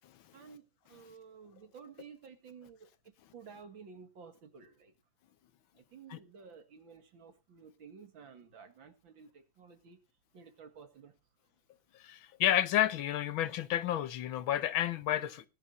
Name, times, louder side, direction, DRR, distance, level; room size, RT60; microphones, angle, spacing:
voice 1, 0.3-4.9 5.7-10.0 10.3-11.1, right 6 dB, 70° right, 2.7 m, -53 dB
voice 2, 12.0-15.4, left 12 dB, 85° left, 1.7 m, -30 dB
20.5 x 11.0 x 2.6 m
omnidirectional pair, 2.2 m